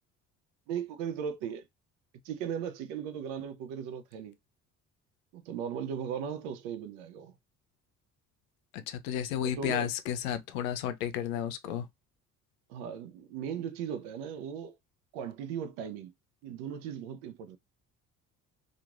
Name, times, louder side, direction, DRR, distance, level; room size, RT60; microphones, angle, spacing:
voice 1, 0.7-1.6 2.2-4.4 5.3-7.3 9.6-9.9 12.7-14.8 15.1-16.1 16.4-17.6, right 8 dB, 80° right, 0.6 m, -37 dB
voice 2, 8.7-11.9, left 10 dB, 85° left, 0.6 m, -32 dB
2.9 x 2.5 x 2.4 m
hypercardioid pair, 55°, 42 cm